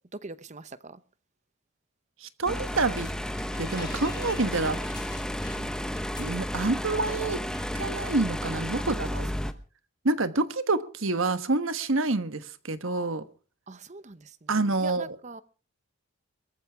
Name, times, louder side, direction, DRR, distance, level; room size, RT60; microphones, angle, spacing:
voice 1, 0.1-1.0 5.5-5.8 8.8-9.0 9.4-9.6 13.7-14.5 14.8-15.4, right 3 dB, 30° right, 0.9 m, -43 dB
voice 2, 2.2-3.1 3.6-4.8 6.2-7.4 7.7-9.3 10.0-13.2 14.5-15.1, right 3 dB, 60° right, 1.3 m, -27 dB
sound 1, 2.5-9.5, equal, 5° left, 1.0 m, -32 dB
sound 2, 2.6-6.8 7.1-7.2 7.5-7.9, left 4 dB, 20° left, 2.1 m, -47 dB
22.5 x 14.5 x 3.5 m
head